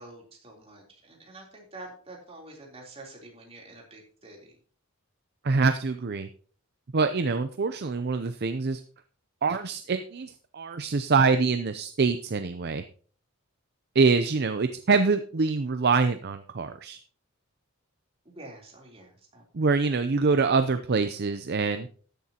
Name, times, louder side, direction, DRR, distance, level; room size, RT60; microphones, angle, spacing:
voice 1, 0.0-4.5 18.2-19.4, right 2 dB, 30° right, -1 dB, 3.5 m, -47 dB
voice 2, 5.4-6.3 6.9-8.8 9.4-12.8 13.9-17.0 19.5-21.9, right 4 dB, 50° right, 9 dB, 0.6 m, -25 dB
13.5 x 10.5 x 2.9 m, 0.44 s
head